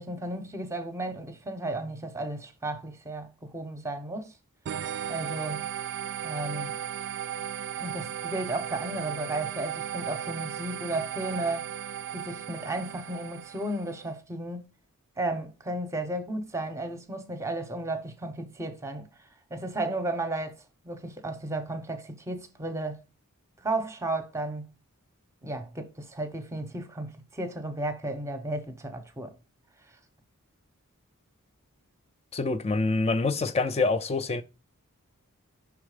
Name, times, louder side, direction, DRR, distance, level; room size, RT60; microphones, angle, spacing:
voice 1, 0.0-4.3 5.1-5.7 6.2-6.7 7.8-11.7 12.1-14.7 15.2-19.1 19.5-23.0 23.6-24.7 25.4-29.3, right 2 dB, 15° right, 0.7 m, -34 dB
sound 1, 4.7-14.0, right 9 dB, 55° right, 0.3 m, -36 dB
voice 2, 32.3-34.4, left 3 dB, 25° left, 0.4 m, -26 dB
5.7 x 3.5 x 4.9 m
head